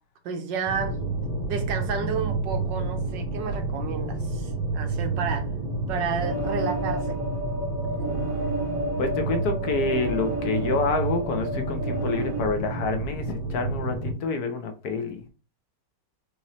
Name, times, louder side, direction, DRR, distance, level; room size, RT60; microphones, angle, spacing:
voice 1, 0.2-1.0 1.5-5.5 5.9-7.2, right 6 dB, 90° right, 1.5 m, -31 dB
sound 1, 0.7-14.1, right 3 dB, 15° left, 1.1 m, -30 dB
sound 2, 6.2-12.4, right 1 dB, 65° right, 0.9 m, -32 dB
voice 2, 9.0-15.2, left 4 dB, 65° left, 1.2 m, -28 dB
5.1 x 2.8 x 2.9 m
omnidirectional pair, 1.9 m